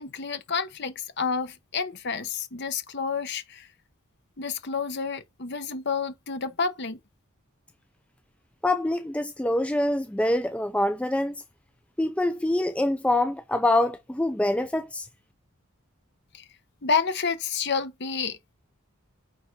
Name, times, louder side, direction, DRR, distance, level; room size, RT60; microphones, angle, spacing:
voice 1, 0.0-3.7 4.4-7.0 16.3-16.4 16.8-18.4, left 5 dB, 50° left, 1.0 m, -29 dB
voice 2, 8.6-11.3 12.0-15.1, left 1 dB, 5° left, 0.3 m, -25 dB
9.0 x 3.8 x 4.6 m
head